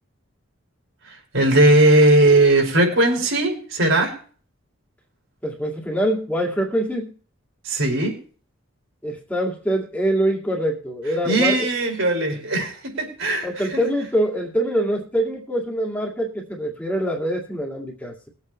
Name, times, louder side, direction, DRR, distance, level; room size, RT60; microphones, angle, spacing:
voice 1, 1.3-4.1 7.6-8.2 11.2-13.8, right 2 dB, 75° right, 0 dB, 5.3 m, -18 dB
voice 2, 5.4-7.1 9.0-11.5 13.4-18.3, right 1 dB, 10° left, 0 dB, 2.2 m, -24 dB
21.0 x 8.3 x 3.2 m, 0.43 s
head